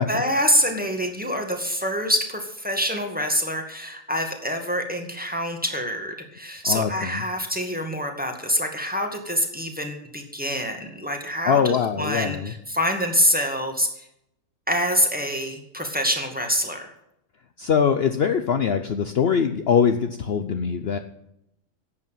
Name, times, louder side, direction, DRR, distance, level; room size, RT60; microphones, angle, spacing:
voice 1, 0.1-14.1 14.7-16.9, equal, 5° right, 3 dB, 2.0 m, -25 dB
voice 2, 6.7-7.2 11.5-12.5 17.6-21.0, left 7 dB, 55° left, 8 dB, 0.9 m, -22 dB
11.5 x 8.4 x 9.0 m, 0.80 s
omnidirectional pair, 1.4 m